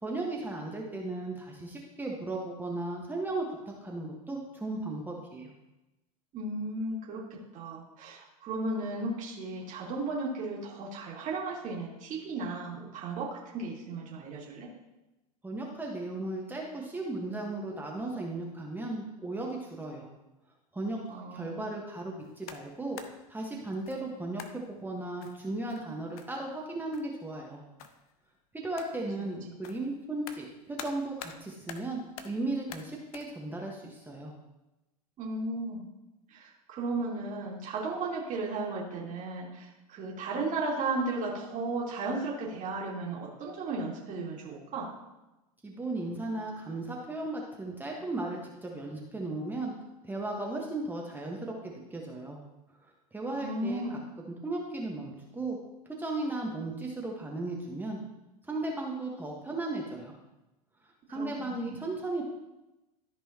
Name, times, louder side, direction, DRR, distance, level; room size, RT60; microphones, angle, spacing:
voice 1, 0.0-5.5 15.4-20.1 20.7-21.0 21.3-27.6 28.5-32.0 32.2-34.3 45.6-49.7 50.0-52.4 53.1-54.0 54.4-55.6 56.0-58.0 58.5-60.1 61.1-62.2, right 2 dB, 10° right, -1 dB, 1.4 m, -36 dB
voice 2, 6.3-14.7 21.1-21.6 35.2-35.8 36.3-44.9 53.4-54.0 61.1-61.8, right 3 dB, 40° right, -4 dB, 2.4 m, -35 dB
sound 1, 22.2-23.3 23.9-24.1 24.4-24.7 25.2-26.7 26.9-27.2 27.8-28.1 28.8-29.1 29.6-31.4 31.7-32.4 32.7-33.3, left 8 dB, 65° left, 0.8 m, -47 dB
13.5 x 5.4 x 2.9 m, 0.99 s
hypercardioid pair, 90°, 20 cm